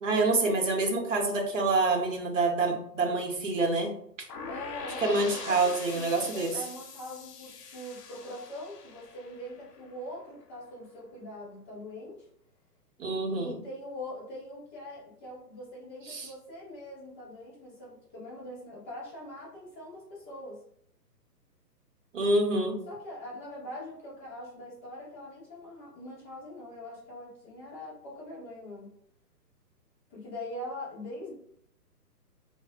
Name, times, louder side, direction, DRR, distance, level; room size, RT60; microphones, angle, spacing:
voice 1, 0.0-3.9 5.0-6.5 13.0-13.5 16.1-16.3 22.1-22.8, right 2 dB, 50° right, 1 dB, 0.8 m, -27 dB
sound 1, 4.3-10.2, left 5 dB, 70° left, 0.6 m, -43 dB
voice 2, 4.5-12.3 13.2-20.6 22.9-28.9 30.1-31.3, left 1 dB, 10° left, -16 dB, 0.7 m, -42 dB
3.2 x 2.1 x 2.4 m, 0.67 s
hypercardioid pair, 165°, 49 cm